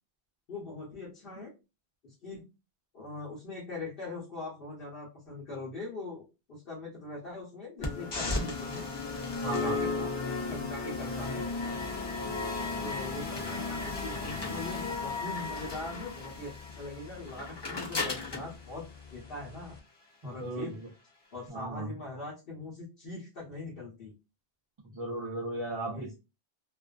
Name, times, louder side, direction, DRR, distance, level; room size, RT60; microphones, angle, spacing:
voice 1, 0.5-1.5 2.0-2.4 2.9-8.9 9.6-10.1 10.5-11.5 12.8-19.8 20.2-20.8 21.3-24.1 25.8-26.1, left 2 dB, 60° left, 1.0 m, -41 dB
sound 1, 7.8-19.8, left 3 dB, 30° left, 0.5 m, -35 dB
voice 2, 9.4-9.8 20.2-20.9 21.5-22.0 24.8-26.1, right 2 dB, 40° right, 0.4 m, -36 dB
2.4 x 2.4 x 2.3 m
omnidirectional pair, 1.1 m